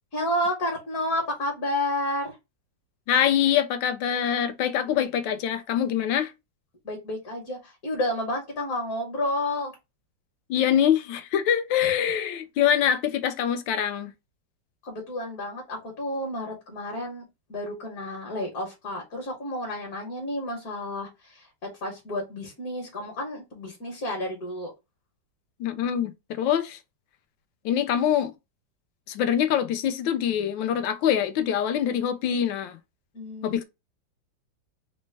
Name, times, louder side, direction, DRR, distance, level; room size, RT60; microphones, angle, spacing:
voice 1, 0.1-2.4 6.8-9.7 14.8-17.2 17.5-21.5 21.8-24.7 33.1-33.6, left 1 dB, 55° left, 1.5 m, -31 dB
voice 2, 3.1-6.3 10.5-14.1 25.6-26.8 27.6-28.3 29.1-32.8 33.4-33.6, left 9 dB, 85° left, 1.3 m, -24 dB
4.2 x 2.1 x 3.2 m
omnidirectional pair, 2.0 m